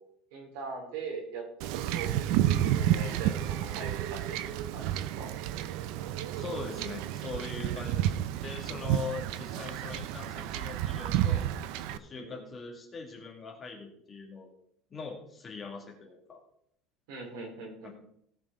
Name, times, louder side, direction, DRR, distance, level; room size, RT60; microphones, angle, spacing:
voice 1, 0.3-1.4 1.8-4.4 4.7-4.9 5.2-5.3 7.8-7.9 12.1-12.5 17.1-18.0, right 4 dB, 85° right, 1 dB, 3.9 m, -41 dB
Wind / Ocean / Boat Water vehicle, 1.6-12.0, right 12 dB, 65° right, 0.5 m, -31 dB
voice 2, 6.3-8.1 8.4-11.5 11.8-14.5 14.9-16.4 17.8-17.9, left 4 dB, 20° left, 0 dB, 2.2 m, -41 dB
17.5 x 6.1 x 3.8 m, 0.69 s
cardioid pair, 165°, 0 cm